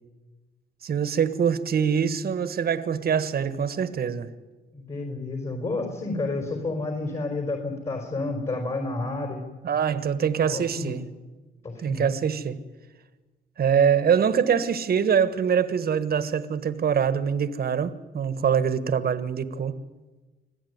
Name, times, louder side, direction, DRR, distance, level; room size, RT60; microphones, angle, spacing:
voice 1, 0.8-4.3 9.6-11.0 11.8-12.6 13.6-19.8, right 7 dB, 50° right, 12 dB, 1.4 m, -24 dB
voice 2, 4.7-9.4 10.5-11.0 11.6-12.1, left 2 dB, 35° left, 3 dB, 4.6 m, -30 dB
25.5 x 15.5 x 9.5 m, 1.3 s
cardioid pair, 90°, 20 cm